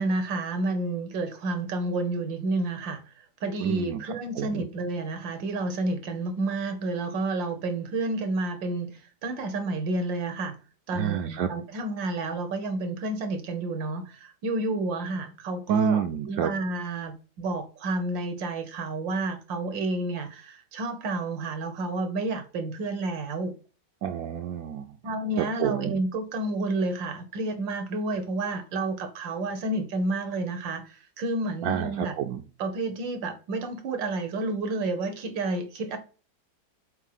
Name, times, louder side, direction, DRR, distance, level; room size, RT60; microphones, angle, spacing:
voice 1, 0.0-3.0 3.4-10.6 10.9-23.5 25.0-32.1 32.6-36.0, right 2 dB, 85° right, 1.8 m, -30 dB
voice 2, 3.6-4.7 10.9-11.5 15.7-16.5 24.0-25.0 25.4-26.0 31.6-32.4, right 9 dB, 70° right, 0.9 m, -29 dB
4.5 x 4.4 x 5.6 m
omnidirectional pair, 2.0 m